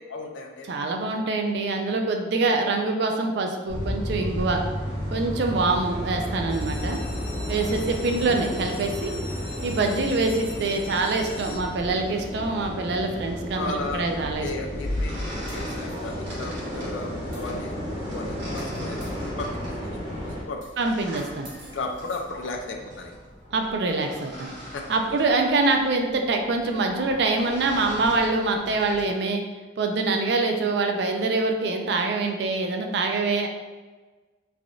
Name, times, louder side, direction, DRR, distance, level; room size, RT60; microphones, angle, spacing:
voice 1, 0.1-0.8 7.8-7.9 13.6-14.1 14.4-20.6 21.7-23.1 24.7-25.2, left 3 dB, 85° left, 3 dB, 0.4 m, -35 dB
voice 2, 0.7-4.6 5.1-7.0 7.5-9.1 9.6-14.5 20.8-21.5 23.5-24.5 24.9-29.4 29.8-33.5, right 3 dB, 60° right, 3 dB, 0.3 m, -25 dB
sound 1, 3.7-20.4, equal, 25° right, 0.9 m, -32 dB
sound 2, 6.5-12.1 12.7-13.2 13.6-13.7 14.0-14.1 14.5-14.6, left 2 dB, 30° left, 0.7 m, -42 dB
sound 3, 14.3-29.1, equal, 75° right, 1.3 m, -39 dB
3.3 x 2.5 x 2.3 m, 1.3 s
head